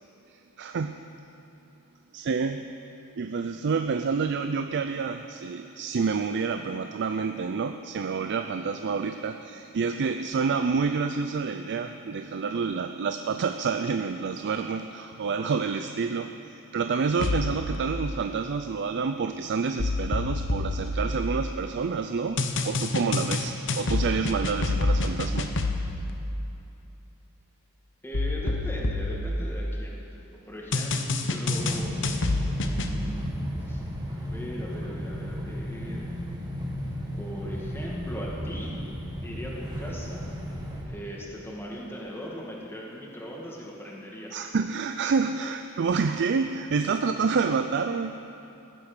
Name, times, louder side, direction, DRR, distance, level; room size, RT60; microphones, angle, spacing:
voice 1, 0.6-1.0 2.1-2.7 3.2-25.6 44.3-48.2, right 5 dB, 50° right, 8 dB, 0.4 m, -28 dB
sound 1, 17.2-17.8 19.8-21.7 22.4-26.1 28.1-30.0 30.7-33.0, left 2 dB, 55° left, 0.9 m, -28 dB
voice 2, 28.0-30.0 30.5-32.0 32.6-33.8 34.1-36.1 37.2-38.8 39.2-40.3 40.8-44.3, equal, 10° left, -4 dB, 1.9 m, -39 dB
sound 2, 31.5-40.8, equal, 20° right, 1.8 m, -34 dB
15.5 x 10.5 x 6.7 m, 2.8 s
head